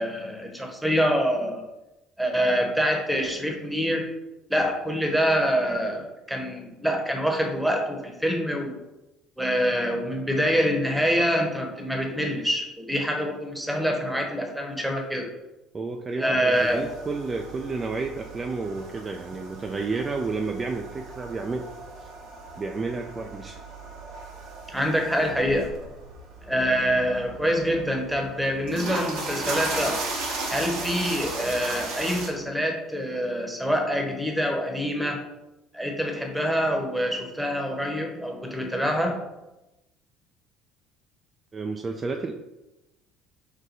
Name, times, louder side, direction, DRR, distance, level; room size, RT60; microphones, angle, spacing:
voice 1, 0.0-1.6 2.2-4.1 4.5-8.8 9.4-15.3 16.2-16.8 24.7-25.7 26.4-30.0 30.5-35.2 35.7-39.2, equal, 5° right, 3 dB, 0.9 m, -25 dB
voice 2, 15.7-21.7 22.0-22.1 22.6-23.6 41.5-42.3, right 3 dB, 30° right, 3 dB, 0.4 m, -31 dB
sound 1, 16.5-32.3, right 3 dB, 75° right, 1.0 m, -36 dB
4.9 x 2.1 x 4.0 m, 0.98 s
hypercardioid pair, 60°, 0 cm